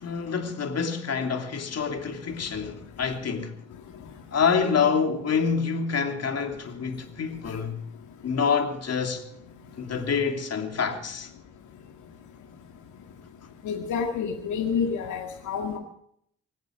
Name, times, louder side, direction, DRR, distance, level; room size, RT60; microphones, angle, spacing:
voice 1, 0.0-3.5 4.3-7.8 8.2-9.3 9.8-11.3, left 6 dB, 55° left, 3.1 m, -27 dB
voice 2, 13.6-15.8, left 6 dB, 75° left, 2.2 m, -28 dB
25.5 x 8.9 x 5.2 m
hypercardioid pair, 45°, 30 cm